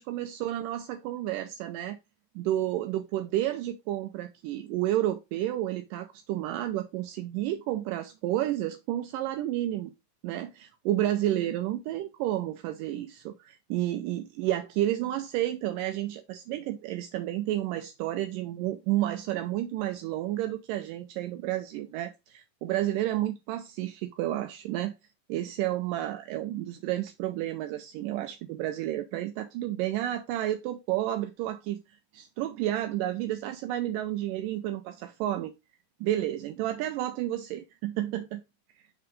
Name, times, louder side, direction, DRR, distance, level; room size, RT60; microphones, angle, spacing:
voice 1, 0.0-2.0 2.4-9.9 10.2-24.9 25.3-31.8 32.1-35.5 36.0-38.4, right 13 dB, 80° right, 2.1 m, -31 dB
5.7 x 3.5 x 5.0 m
omnidirectional pair, 4.0 m